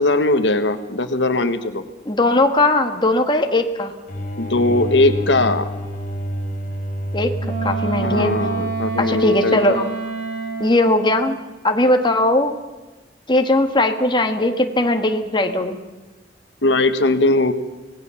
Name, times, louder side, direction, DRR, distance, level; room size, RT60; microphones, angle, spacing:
voice 1, 0.0-1.8 4.4-5.7 8.0-9.8 16.6-17.5, left 2 dB, 75° left, 9 dB, 1.4 m, -19 dB
voice 2, 2.0-3.9 7.1-7.3 7.6-8.3 9.0-9.9 10.6-11.4 11.6-12.5 13.3-15.8, left 1 dB, 25° left, 5 dB, 1.7 m, -18 dB
sound 1, 4.1-9.5, equal, 45° left, 4.4 m, -28 dB
Wind instrument woodwind instrument, 7.4-10.9, right 4 dB, 55° right, 7.2 m, -27 dB
25.5 x 18.5 x 7.2 m, 1.2 s
head